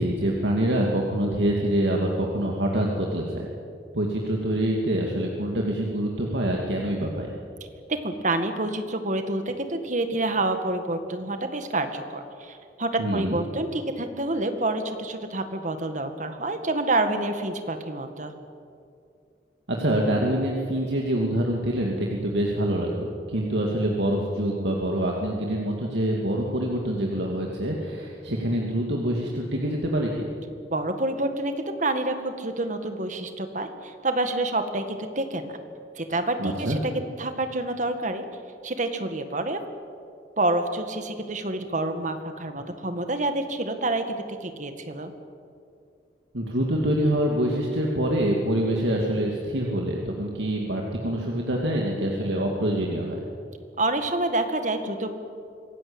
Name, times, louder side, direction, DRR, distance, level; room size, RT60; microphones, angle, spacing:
voice 1, 0.0-3.5 3.9-7.3 13.0-13.4 19.7-30.3 36.4-36.8 46.3-53.3, right 1 dB, 85° right, -1 dB, 2.6 m, -25 dB
voice 2, 7.9-18.3 30.7-35.6 36.0-36.9 37.2-38.2 38.6-39.6 40.4-45.1 53.8-55.1, right 2 dB, 45° right, 7 dB, 2.0 m, -28 dB
25.5 x 17.0 x 8.9 m, 2.4 s
head